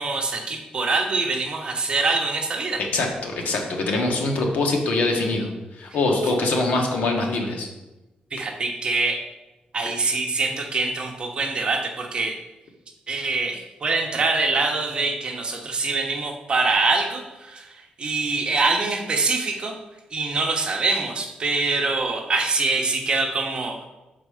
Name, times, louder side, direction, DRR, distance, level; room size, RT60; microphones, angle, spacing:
voice 1, 0.0-2.8 8.3-9.2 9.7-12.4 13.1-17.7 18.0-19.7 20.1-23.9, right 3 dB, 35° right, 2 dB, 0.9 m, -24 dB
voice 2, 2.9-7.7, left 2 dB, 75° left, 1 dB, 1.3 m, -23 dB
6.6 x 4.1 x 4.9 m, 1.0 s
wide cardioid pair, 165°, 3 cm